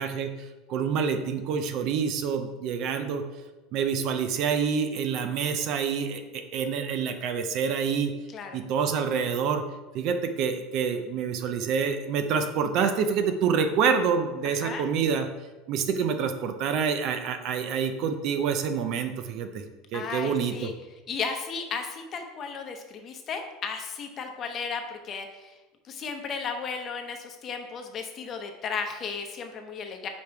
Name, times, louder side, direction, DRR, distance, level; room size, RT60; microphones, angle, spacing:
voice 1, 0.0-3.2 3.7-8.1 8.5-9.6 9.9-15.3 15.7-19.6 19.9-20.7, right 6 dB, 55° right, 7 dB, 0.6 m, -27 dB
voice 2, 14.4-14.8 19.9-20.7 21.1-25.5 25.9-30.1, left 5 dB, 35° left, 4 dB, 0.9 m, -34 dB
5.2 x 5.1 x 4.6 m, 1.2 s
supercardioid pair, 130°, 0 cm